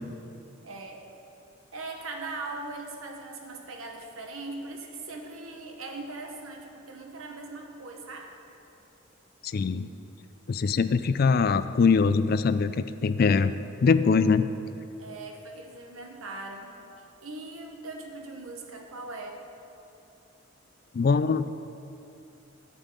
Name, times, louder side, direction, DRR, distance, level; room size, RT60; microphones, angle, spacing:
voice 1, 0.6-1.0 1.7-8.3 15.0-16.7 17.2-19.4, right 2 dB, 80° right, 2 dB, 1.2 m, -40 dB
voice 2, 9.5-9.9 10.5-13.5 13.8-14.5 20.9-21.5, left 5 dB, 45° left, 13 dB, 0.3 m, -22 dB
11.0 x 5.5 x 7.4 m, 2.7 s
head